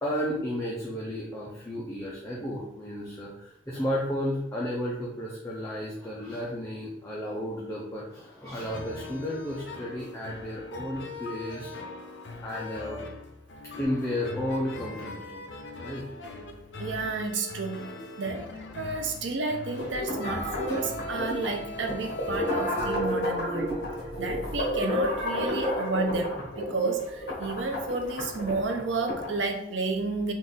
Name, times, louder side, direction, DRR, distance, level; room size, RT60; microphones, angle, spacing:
voice 1, 0.0-11.7 12.4-13.0 13.8-15.5 15.8-16.0, equal, 15° left, -5 dB, 0.6 m, -33 dB
sound 1, 8.6-23.0, left 2 dB, 75° left, 0.6 m, -41 dB
voice 2, 16.8-23.7 24.2-30.3, right 3 dB, 85° right, 4 dB, 0.7 m, -31 dB
sound 2, 19.8-29.4, left 1 dB, 55° left, 1.1 m, -31 dB
3.7 x 2.5 x 3.8 m, 0.76 s
head